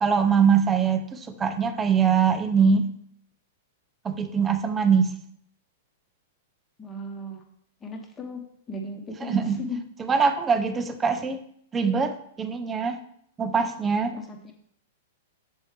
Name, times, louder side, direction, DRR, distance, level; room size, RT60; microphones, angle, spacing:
voice 1, 0.0-2.9 4.0-5.1 9.2-9.6 10.0-11.4 11.7-13.0 13.4-14.1, right 6 dB, 15° right, 8 dB, 0.5 m, -22 dB
voice 2, 6.8-7.4 7.8-8.4 8.7-9.8 14.1-14.5, left 1 dB, 20° left, 3 dB, 1.1 m, -36 dB
7.0 x 4.4 x 3.4 m, 0.67 s
hypercardioid pair, 130°, 0 cm